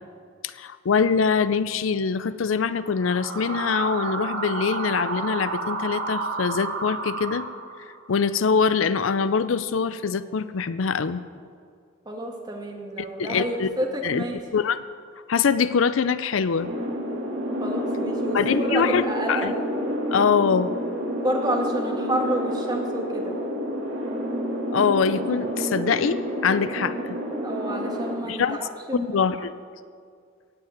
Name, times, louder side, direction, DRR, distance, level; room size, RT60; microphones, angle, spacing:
voice 1, 0.4-7.5 8.1-11.2 13.2-13.7 14.0-14.2 14.5-14.8 15.3-16.7 18.3-19.5 20.1-20.7 24.7-27.2 28.3-28.6 28.9-29.4, left 6 dB, 80° left, 14 dB, 0.5 m, -23 dB
sound 1, 2.9-8.0, right 3 dB, 65° right, 1.2 m, -31 dB
voice 2, 12.1-14.4 17.6-19.5 21.2-23.3 27.4-29.5, right 1 dB, 20° right, 1 dB, 1.8 m, -29 dB
sound 2, 16.6-28.1, equal, 90° right, 2.3 m, -29 dB
16.5 x 5.8 x 8.9 m, 2.2 s
head